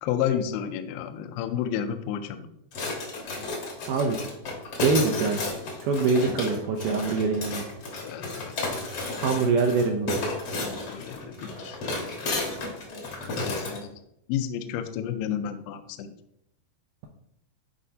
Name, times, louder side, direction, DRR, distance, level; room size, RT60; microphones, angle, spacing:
voice 1, 0.0-2.5 8.0-8.5 10.6-11.8 13.4-14.0 14.3-16.1, left 9 dB, 80° left, 8 dB, 2.2 m, -31 dB
sound 1, 2.7-13.8, left 3 dB, 65° left, 1.3 m, -33 dB
voice 2, 3.9-4.3 4.8-5.4 5.8-7.7 9.2-10.2, right 4 dB, 85° right, 2 dB, 1.9 m, -24 dB
10.0 x 4.2 x 2.7 m, 0.76 s
omnidirectional pair, 4.5 m